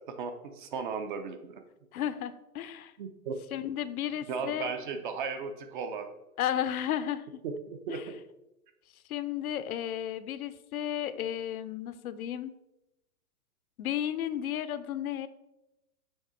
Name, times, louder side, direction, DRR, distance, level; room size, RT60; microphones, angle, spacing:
voice 1, 0.1-1.6 3.0-3.4 4.3-6.1 7.4-8.0, right 5 dB, 35° right, 7 dB, 0.5 m, -36 dB
voice 2, 1.9-2.9 3.5-4.7 6.4-7.4 7.9-8.1 9.1-12.5 13.8-15.3, left 10 dB, 65° left, 13 dB, 0.6 m, -33 dB
6.5 x 3.6 x 4.3 m, 0.94 s
hypercardioid pair, 135°, 46 cm